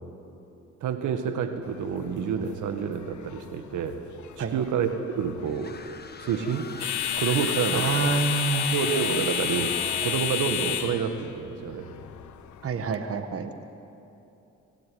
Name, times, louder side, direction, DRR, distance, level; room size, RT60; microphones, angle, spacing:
voice 1, 0.8-4.0 4.4-4.9 5.2-5.8 6.2-7.9 8.7-11.9, right 7 dB, 80° right, 7 dB, 1.8 m, -28 dB
sound 1, 1.6-13.0, left 10 dB, 75° left, 1.3 m, -32 dB
sound 2, 5.5-10.4, left 5 dB, 35° left, 1.7 m, -39 dB
voice 2, 7.7-8.8 12.6-13.5, right 5 dB, 50° right, 7 dB, 1.7 m, -27 dB
26.0 x 18.0 x 9.4 m, 2.9 s
cardioid pair, 90°, 30 cm